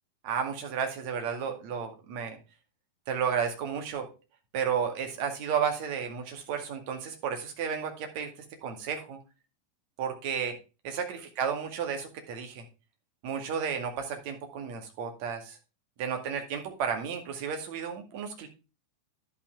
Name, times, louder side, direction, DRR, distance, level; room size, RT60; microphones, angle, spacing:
voice 1, 0.2-2.4 3.1-4.1 4.5-8.3 8.6-9.2 10.0-10.6 10.8-12.7 13.2-15.6 16.0-18.5, right 7 dB, 45° right, 5 dB, 2.0 m, -32 dB
10.5 x 5.6 x 4.7 m, 0.31 s
figure-of-eight pair, 90°, 0 cm